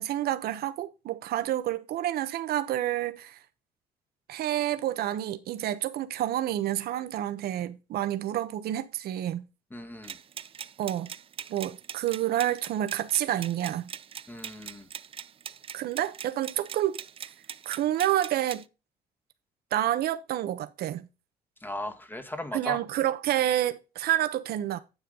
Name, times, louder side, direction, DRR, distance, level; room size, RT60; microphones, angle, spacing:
voice 1, 0.0-3.4 4.3-9.4 10.8-11.1 11.5-13.9 15.7-17.0 17.6-18.6 19.7-21.1 22.5-24.8, right 12 dB, 65° right, 1.0 m, -29 dB
voice 2, 9.7-10.2 14.3-14.9 21.6-22.8, left 1 dB, 10° left, 1.5 m, -37 dB
sound 1, 10.0-18.6, right 8 dB, 35° right, 0.5 m, -42 dB
9.8 x 7.2 x 3.9 m
cardioid pair, 110°, 17 cm